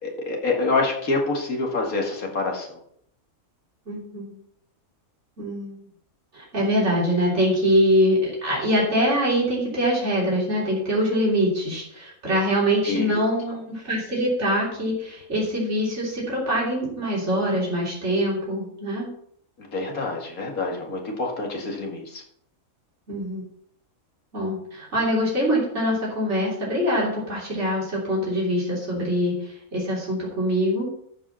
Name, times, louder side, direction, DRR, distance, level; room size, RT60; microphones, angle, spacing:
voice 1, 0.0-2.8 12.8-13.2 19.6-22.2, left 3 dB, 90° left, 1 dB, 2.6 m, -27 dB
voice 2, 3.9-4.4 5.4-5.8 6.3-19.1 23.1-23.4 24.3-30.9, equal, 55° right, -5 dB, 3.6 m, -24 dB
13.5 x 5.2 x 5.6 m, 0.68 s
omnidirectional pair, 1.5 m